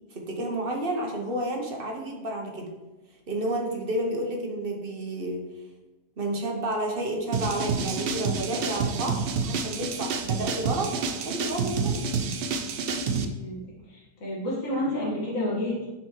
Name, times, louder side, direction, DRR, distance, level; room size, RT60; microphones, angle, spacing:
voice 1, 0.1-2.7 3.3-5.4 6.2-12.0, right 1 dB, 45° right, 1 dB, 1.0 m, -31 dB
sound 1, 7.3-13.2, right 5 dB, 65° right, 0.6 m, -28 dB
voice 2, 13.1-13.6 13.9-15.9, left 1 dB, 65° left, -7 dB, 2.0 m, -30 dB
9.3 x 4.1 x 3.0 m, 1.1 s
omnidirectional pair, 1.5 m